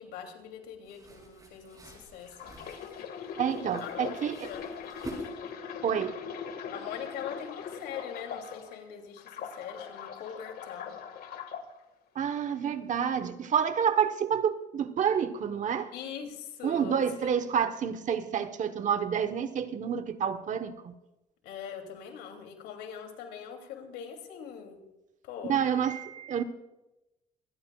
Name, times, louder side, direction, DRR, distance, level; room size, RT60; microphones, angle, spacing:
voice 1, 0.0-2.5 3.8-4.7 6.7-11.0 15.9-17.5 21.4-24.8 25.2-25.6 26.4-26.5, left 7 dB, 90° left, 2.9 m, -42 dB
sound 1, 0.8-5.8, right 2 dB, 20° right, 6.9 m, -48 dB
sound 2, 2.3-8.8 9.2-11.6 12.3-12.5, left 7 dB, 65° left, 1.9 m, -41 dB
voice 2, 3.4-4.5 5.8-6.1 12.1-15.9 16.6-20.9 25.5-26.4, right 8 dB, 50° right, 1.1 m, -29 dB
26.0 x 16.5 x 2.4 m
cardioid pair, 110°, 17 cm